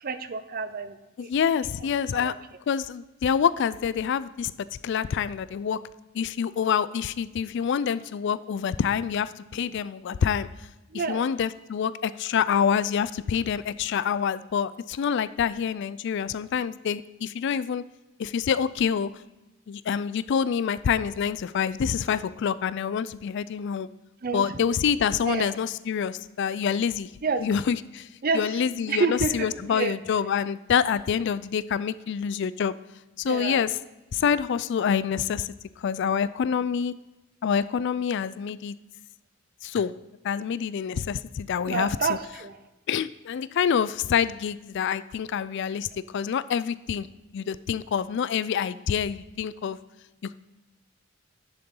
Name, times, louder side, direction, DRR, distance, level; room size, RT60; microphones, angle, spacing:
voice 1, 0.0-1.3 2.1-2.3 10.9-11.2 24.2-24.4 24.7-24.8 25.3-25.5 27.2-27.4 28.2-28.4 28.9-29.3 29.6-29.9 33.3-33.6 41.6-42.6, right 4 dB, 45° right, 11 dB, 0.6 m, -28 dB
voice 2, 1.2-2.3 2.7-4.5 4.8-5.8 6.1-10.5 10.9-17.8 18.2-19.1 19.7-23.9 24.3-27.1 27.4-28.1 28.3-32.7 33.2-33.8 34.1-36.9 37.4-38.7 39.6-39.9 40.2-42.2 42.9-47.1 47.3-49.8 50.2-50.3, left 7 dB, 60° left, 17 dB, 0.3 m, -26 dB
10.5 x 6.8 x 3.8 m, 1.0 s
head